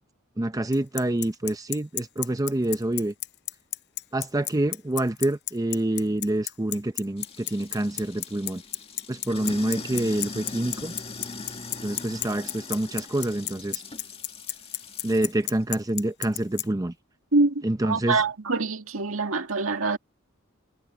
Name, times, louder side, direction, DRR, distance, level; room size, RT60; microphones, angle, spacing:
voice 1, 0.4-3.1 4.1-8.6 9.1-10.9 11.8-13.8 15.0-16.9 17.6-18.2, right 1 dB, 15° right, 0.6 m, -27 dB
Bicycle, 0.7-16.6, left 15 dB, 55° left, 0.7 m, -30 dB
Sink (filling or washing), 7.2-15.3, left 3 dB, 30° left, 1.8 m, -40 dB
voice 2, 17.3-17.6 17.9-20.0, right 3 dB, 75° right, 2.0 m, -24 dB
head